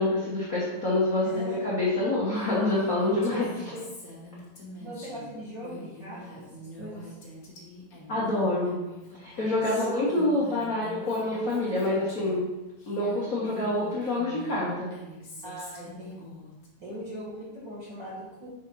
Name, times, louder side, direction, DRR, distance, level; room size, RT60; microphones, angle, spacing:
voice 1, 0.0-3.5 8.1-8.8 9.2-12.5 12.9-14.9, left 2 dB, 80° left, -7 dB, 0.7 m, -26 dB
voice 2, 1.2-1.6 3.1-3.9 4.8-7.2 9.6-10.1 15.4-16.4 16.8-18.5, equal, 45° right, -7 dB, 1.5 m, -40 dB
Female speech woman speaking, 2.3-12.4 12.8-16.7, left 1 dB, 50° left, 1.1 m, -45 dB
6.2 x 3.9 x 5.4 m, 1.0 s
omnidirectional pair, 3.8 m